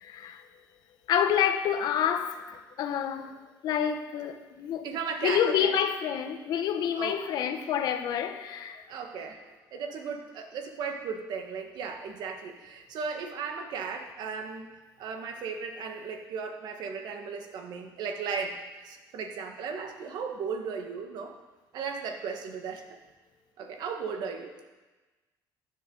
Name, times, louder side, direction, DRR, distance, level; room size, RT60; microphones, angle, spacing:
voice 1, 0.0-0.4 1.1-2.4 2.8-3.4 3.6-4.9 5.2-8.8, left 9 dB, 65° left, 1.0 m, -28 dB
voice 2, 4.8-5.8 7.0-7.2 8.9-14.7 15.0-21.3 21.7-23.0 23.6-24.6, right 5 dB, 70° right, 1.6 m, -36 dB
15.5 x 10.0 x 4.0 m
cardioid pair, 160°, 8 cm